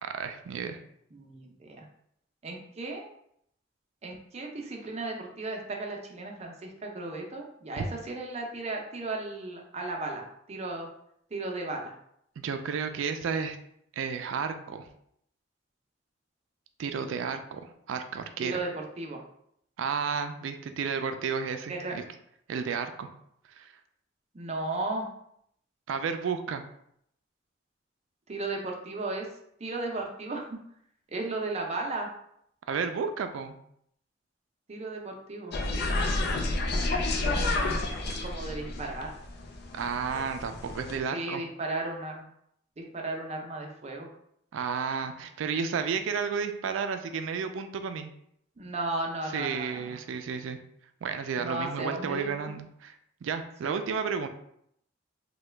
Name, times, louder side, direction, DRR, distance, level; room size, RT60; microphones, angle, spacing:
voice 1, 0.0-0.8 7.8-7.9 12.4-13.6 13.9-14.9 16.8-18.6 19.8-22.0 22.5-23.1 23.6-23.7 25.9-26.6 32.7-33.6 39.7-41.4 44.5-48.1 49.3-50.6 51.0-53.0 53.2-54.3, right 6 dB, 85° right, 8 dB, 0.3 m, -32 dB
voice 2, 1.1-1.8 2.4-3.0 4.0-10.9 11.3-11.9 18.4-18.7 19.0-19.2 21.7-21.9 24.3-25.1 28.3-29.3 29.6-30.6 31.1-32.1 34.7-35.6 38.2-39.1 41.1-42.3 42.8-44.1 48.6-49.9 51.4-52.6 53.6-53.7, right 2 dB, 35° right, 1 dB, 0.5 m, -35 dB
sound 1, 35.5-41.0, left 2 dB, 60° left, 0.4 m, -30 dB
2.8 x 2.2 x 3.3 m, 0.72 s
head